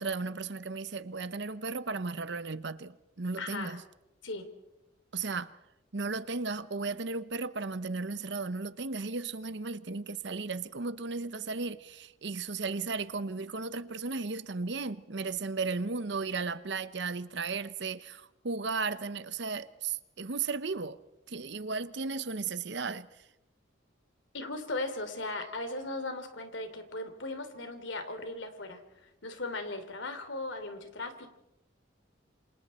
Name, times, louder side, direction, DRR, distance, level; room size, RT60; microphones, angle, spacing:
voice 1, 0.0-3.8 5.1-5.5 5.9-21.0 21.3-23.1, right 4 dB, 60° right, 0.8 m, -35 dB
voice 2, 3.4-3.8 4.2-4.5 24.3-28.8 29.2-31.4, left 2 dB, 75° left, 3.1 m, -37 dB
27.5 x 26.5 x 4.3 m
head